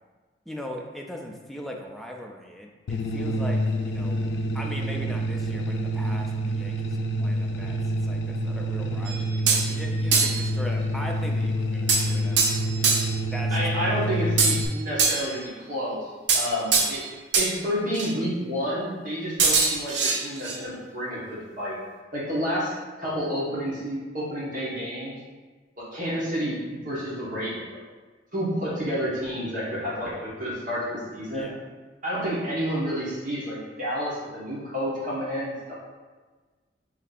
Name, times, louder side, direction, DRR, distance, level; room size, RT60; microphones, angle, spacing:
voice 1, 0.5-12.6 13.2-14.2 31.3-31.6, equal, ahead, 0 dB, 0.3 m, -39 dB
sound 1, 2.9-14.7, right 1 dB, 90° left, 0.4 m, -27 dB
sound 2, 9.1-9.7 10.1-10.5 11.9-13.2 14.4-15.4 16.3-17.0 17.3-17.5 17.9-18.1 19.4-20.6, right 4 dB, 85° right, 0.6 m, -23 dB
voice 2, 13.5-17.1 17.3-21.8 22.1-25.2 25.8-27.6 28.3-31.5 32.0-35.7, equal, 50° right, -8 dB, 1.4 m, -30 dB
3.2 x 2.7 x 4.1 m, 1.4 s
head